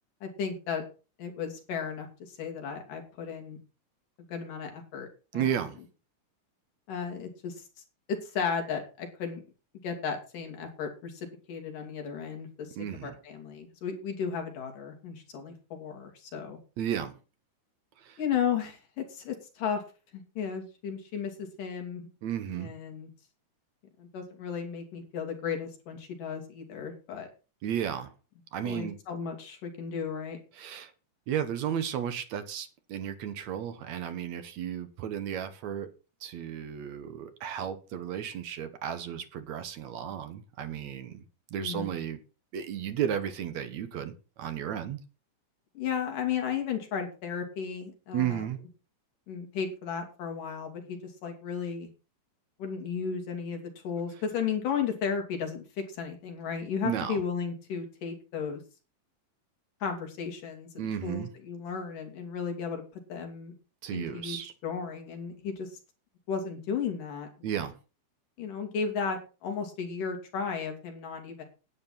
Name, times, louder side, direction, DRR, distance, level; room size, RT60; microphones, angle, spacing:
voice 1, 0.2-0.8 1.2-3.6 4.3-5.1 5.3-5.5 6.9-7.7 8.1-9.4 9.8-12.8 13.0-16.6 18.2-19.8 20.1-22.1 22.6-23.1 24.0-27.3 28.6-30.4 41.6-42.0 45.7-48.5 49.3-51.9 52.6-58.6 59.8-62.8 63.1-63.5 63.9-64.4 64.6-65.7 66.3-67.3 68.4-71.4, left 6 dB, 80° left, 4.3 m, -34 dB
voice 2, 5.3-5.8 12.8-13.2 16.8-17.2 18.0-18.2 22.2-22.7 27.6-28.1 28.5-29.0 30.6-30.9 31.3-35.9 36.2-41.2 41.5-42.2 42.5-44.1 44.4-45.0 48.1-48.6 56.8-57.2 60.8-61.3 63.8-64.5 67.4-67.8, right 9 dB, 65° right, 2.3 m, -33 dB
11.0 x 9.6 x 5.8 m
omnidirectional pair, 3.7 m